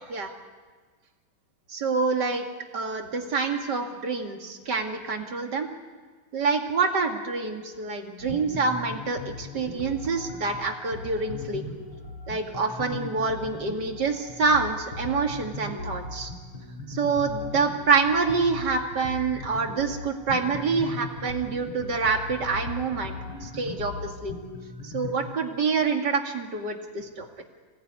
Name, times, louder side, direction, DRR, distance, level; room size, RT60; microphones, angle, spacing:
voice 1, 1.7-2.4 2.7-5.7 6.3-11.6 12.3-16.3 16.9-23.2 23.4-24.3 24.8-27.3, right 4 dB, 55° right, 4 dB, 2.8 m, -26 dB
sound 1, 8.2-25.1, left 3 dB, 75° left, 7.5 m, -38 dB
27.0 x 19.0 x 9.7 m, 1.5 s
omnidirectional pair, 2.3 m